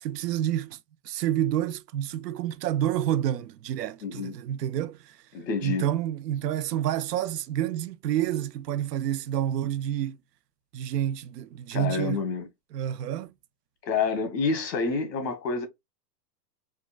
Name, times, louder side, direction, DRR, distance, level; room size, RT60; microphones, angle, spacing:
voice 1, 0.0-0.8 1.0-5.2 5.6-10.2 10.7-12.2 12.7-13.3, right 11 dB, 75° right, 0.6 m, -29 dB
voice 2, 4.0-4.3 5.3-5.8 11.7-12.5 13.8-15.7, left 4 dB, 85° left, 1.2 m, -28 dB
3.6 x 2.1 x 2.4 m
supercardioid pair, 165°, 49 cm